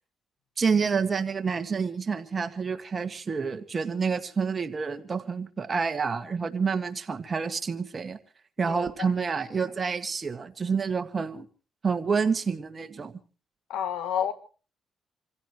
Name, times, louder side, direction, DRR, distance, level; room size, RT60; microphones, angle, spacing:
voice 1, 0.6-8.2 8.6-11.5 11.8-13.1, right 5 dB, 35° right, 1.9 m, -28 dB
voice 2, 8.6-9.3 13.7-14.3, left 9 dB, 90° left, 1.8 m, -31 dB
27.5 x 16.0 x 3.1 m
cardioid pair, 90°, 0 cm